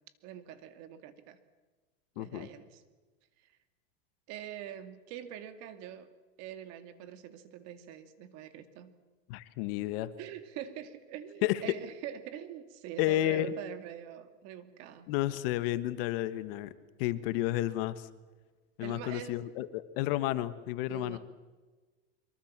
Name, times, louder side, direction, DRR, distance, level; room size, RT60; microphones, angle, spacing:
voice 1, 0.2-1.4 2.2-2.8 4.3-6.1 6.4-9.0 10.2-15.1 18.8-19.4 20.9-21.2, right 10 dB, 50° right, 10 dB, 2.4 m, -44 dB
voice 2, 2.2-2.5 9.3-10.1 11.4-11.6 13.0-13.5 15.1-16.7 17.0-18.1 18.8-21.2, left 15 dB, 55° left, 13 dB, 1.5 m, -31 dB
24.0 x 23.5 x 7.5 m, 1.3 s
supercardioid pair, 140°, 33 cm